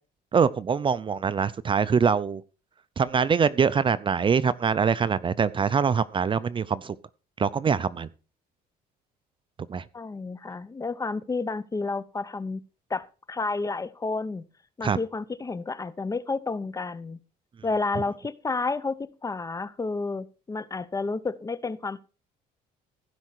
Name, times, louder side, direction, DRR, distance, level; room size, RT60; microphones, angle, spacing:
voice 1, 0.3-2.4 3.0-7.0 7.4-8.1 9.7-9.8 14.8-15.0, right 6 dB, 30° right, 0.5 m, -24 dB
voice 2, 9.9-12.6 12.9-14.4 14.8-17.2 17.6-22.0, left 3 dB, 20° left, 0.6 m, -31 dB
15.5 x 5.5 x 4.7 m
cardioid pair, 110°, 17 cm